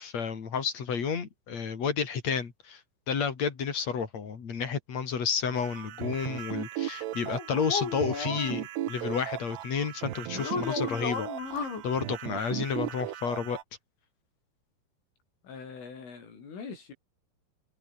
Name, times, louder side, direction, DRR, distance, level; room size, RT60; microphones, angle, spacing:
voice 1, 0.0-2.8 3.1-13.6, left 6 dB, 40° left, 3.7 m, -31 dB
sound 1, 5.5-13.6, right 13 dB, 70° right, 3.2 m, -37 dB
sound 2, 7.3-8.6 10.4-11.8, left 5 dB, 70° left, 8.8 m, -34 dB
voice 2, 15.4-16.9, left 5 dB, 90° left, 9.9 m, -43 dB
omnidirectional pair, 5.5 m